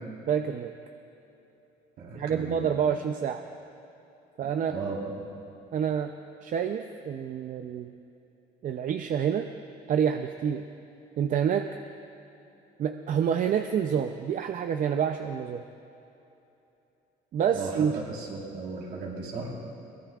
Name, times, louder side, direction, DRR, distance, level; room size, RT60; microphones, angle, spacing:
voice 1, 0.3-0.7 2.1-3.4 4.4-4.8 5.7-6.1 6.4-7.9 8.6-9.5 9.9-10.6 11.2-11.7 12.8-15.7 17.3-17.9, right 8 dB, 50° right, 6 dB, 0.6 m, -27 dB
voice 2, 2.0-2.7 4.4-5.2 17.5-19.5, right 4 dB, 70° right, -3 dB, 3.8 m, -36 dB
23.0 x 18.0 x 2.4 m, 2.9 s
cardioid pair, 110°, 17 cm